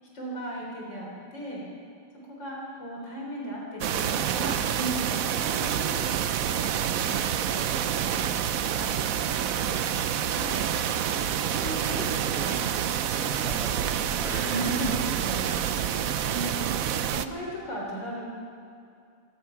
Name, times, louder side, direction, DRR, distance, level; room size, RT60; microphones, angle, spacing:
voice 1, 0.0-1.6 2.1-6.0 6.5-10.7 11.4-12.2 12.4-12.5 14.3-16.8 17.1-18.2, right 1 dB, 65° left, -3 dB, 4.5 m, -37 dB
sound 1, 3.8-17.3, right 9 dB, 65° right, 0.9 m, -28 dB
voice 2, 13.2-14.4, equal, ahead, -3 dB, 3.1 m, -41 dB
25.5 x 18.0 x 5.9 m, 2.5 s
omnidirectional pair, 2.1 m